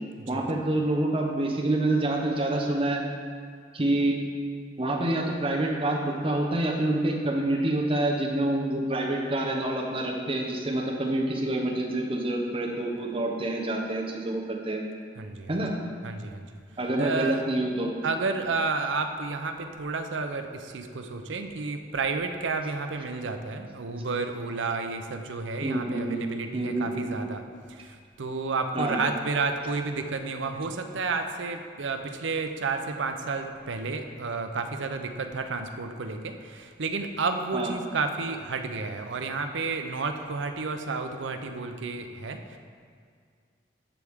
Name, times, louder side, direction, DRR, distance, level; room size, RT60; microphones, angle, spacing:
voice 1, 0.3-3.0 3.7-4.2 4.8-14.8 15.5-15.7 16.8-17.9 25.6-26.2 26.5-27.1 28.7-29.0 37.5-37.7, right 1 dB, 30° right, 0 dB, 0.9 m, -27 dB
voice 2, 15.2-15.6 16.0-16.5 17.0-17.4 18.0-27.4 27.7-42.6, right 4 dB, 80° right, 6 dB, 0.6 m, -31 dB
13.0 x 4.7 x 3.6 m, 2.1 s
head